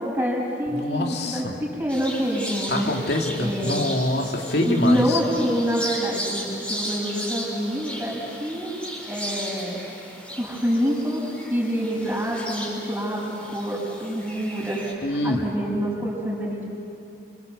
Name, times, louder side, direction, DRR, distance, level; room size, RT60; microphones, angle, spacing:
voice 1, 0.0-2.9 3.4-3.9 4.6-8.7 9.0-9.8 10.4-11.2 11.5-16.7, equal, 10° right, -3 dB, 6.4 m, -26 dB
voice 2, 0.7-1.5 2.7-5.2 15.0-15.5, left 1 dB, 70° left, 1 dB, 2.5 m, -25 dB
sound 1, 1.9-14.9, equal, 5° left, 4.2 m, -35 dB
27.0 x 26.5 x 8.1 m, 2.6 s
head